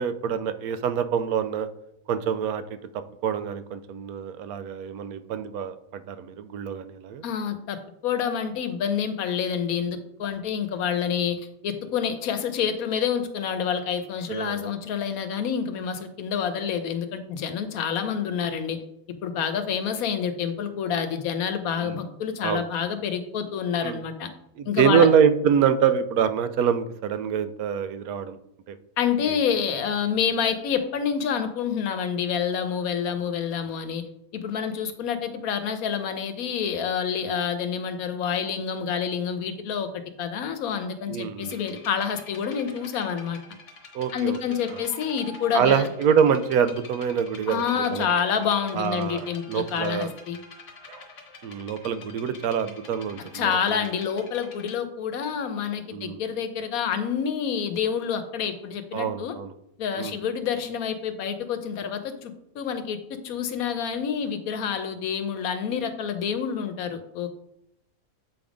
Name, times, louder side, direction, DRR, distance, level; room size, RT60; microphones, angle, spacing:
voice 1, 0.0-1.7 2.1-2.6 3.2-7.2 14.3-14.7 21.8-22.0 22.4-22.6 23.8-24.0 24.6-28.4 28.7-28.8 29.3-29.4 41.1-41.6 43.9-44.6 45.5-48.0 48.7-49.2 49.5-50.1 51.4-53.6 55.9-56.2 58.9-59.5 60.0-60.1, right 7 dB, 90° right, 11 dB, 1.1 m, -25 dB
voice 2, 7.2-7.8 8.0-18.8 19.2-24.3 24.7-25.1 29.0-34.0 34.3-43.4 44.1-45.9 47.5-50.4 53.3-59.4 59.8-63.0 63.2-67.3, left 7 dB, 80° left, 9 dB, 1.2 m, -28 dB
sound 1, 41.4-54.7, left 4 dB, 55° left, 1.4 m, -47 dB
Bark, 44.7-46.8 47.4-48.2 48.5-48.7 49.1-49.4 50.9-51.2 51.7-51.8 52.1-52.6, right 3 dB, 50° right, 1.1 m, -45 dB
7.6 x 3.5 x 5.0 m, 0.79 s
omnidirectional pair, 1.5 m